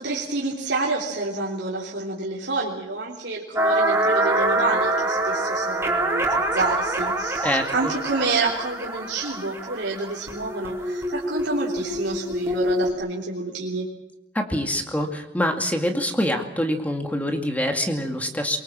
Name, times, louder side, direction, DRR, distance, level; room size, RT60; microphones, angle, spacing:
voice 1, 0.0-13.9, right 3 dB, 85° right, -4 dB, 3.5 m, -28 dB
sound 1, 3.6-12.9, right 1 dB, 15° right, 4.1 m, -25 dB
voice 2, 7.4-7.9 14.3-18.6, equal, 10° left, 4 dB, 2.3 m, -25 dB
24.0 x 23.0 x 7.6 m, 0.89 s
head